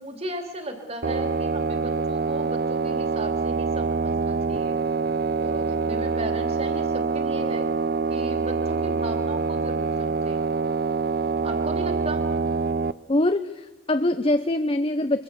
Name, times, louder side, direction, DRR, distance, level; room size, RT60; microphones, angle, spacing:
voice 1, 0.0-4.8 5.4-7.7 8.1-10.4 11.4-12.3, right 1 dB, 30° right, 4 dB, 3.0 m, -36 dB
sound 1, 1.0-12.9, right 4 dB, 50° right, 0.7 m, -25 dB
voice 2, 13.1-15.2, left 1 dB, 30° left, 10 dB, 0.7 m, -23 dB
24.0 x 23.5 x 6.8 m, 1.1 s
head